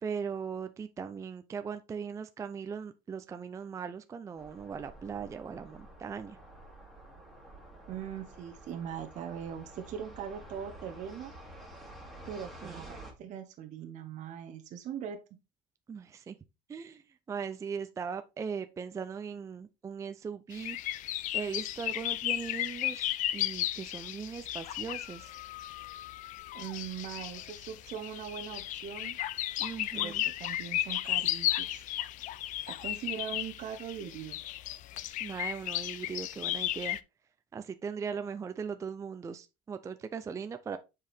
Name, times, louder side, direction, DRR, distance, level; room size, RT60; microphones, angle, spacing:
voice 1, 0.0-6.4 12.6-12.8 15.9-16.4 16.7-20.8 21.3-25.3 29.6-30.2 35.2-37.0 37.5-40.8, right 6 dB, 20° right, 0.4 m, -39 dB
sound 1, 4.4-13.1, right 1 dB, ahead, 2.3 m, -50 dB
voice 2, 7.9-11.3 12.2-15.2 26.5-29.2 29.9-31.8 32.7-34.4, right 8 dB, 50° right, 0.9 m, -41 dB
sound 2, 20.5-37.0, left 14 dB, 50° left, 0.5 m, -35 dB
7.4 x 4.8 x 3.4 m
cardioid pair, 135°, 17 cm